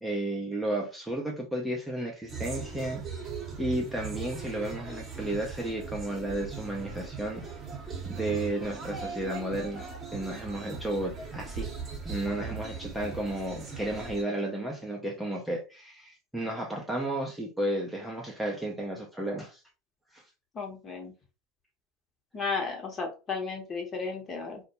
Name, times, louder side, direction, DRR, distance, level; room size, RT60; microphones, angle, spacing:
voice 1, 0.0-3.0 3.6-7.4 8.1-9.9 10.1-11.7 12.0-19.6 20.1-20.2, right 1 dB, 5° right, 0.6 m, -33 dB
sound 1, 2.3-14.2, right 5 dB, 30° right, 0.9 m, -39 dB
voice 2, 20.5-21.1 22.3-24.6, left 4 dB, 30° left, 1.0 m, -34 dB
2.2 x 2.1 x 2.9 m
hypercardioid pair, 85°, 0 cm